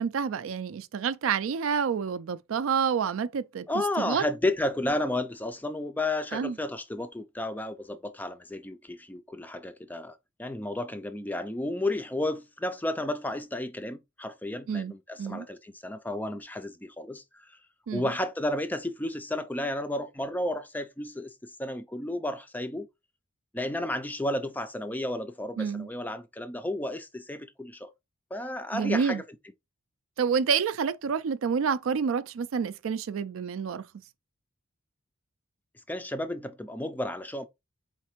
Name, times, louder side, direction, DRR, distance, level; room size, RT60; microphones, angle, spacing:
voice 1, 0.0-3.6 4.0-4.2 6.3-6.5 14.7-14.9 15.2-15.5 17.9-18.1 25.6-25.9 28.7-29.2 30.2-33.8, right 6 dB, 75° right, 0.4 m, -28 dB
voice 2, 3.7-17.6 17.9-22.9 23.5-27.9 28.3-29.2 35.9-37.4, left 1 dB, 10° left, 0.3 m, -32 dB
4.2 x 3.2 x 3.0 m
head